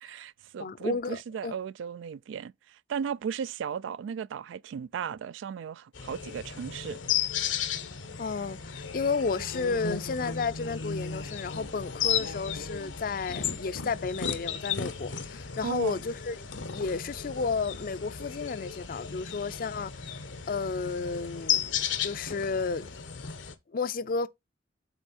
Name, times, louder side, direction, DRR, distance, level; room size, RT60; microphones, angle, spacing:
voice 1, 0.0-7.0 15.6-16.0, right 7 dB, 80° right, 0.3 m, -36 dB
voice 2, 0.6-1.6 8.2-16.4 16.6-20.2 20.5-21.7 22.0-22.9 23.7-24.3, left 4 dB, 50° left, 0.4 m, -32 dB
sound 1, 5.9-23.5, left 8 dB, 80° left, 0.9 m, -34 dB
8.1 x 3.7 x 4.2 m
head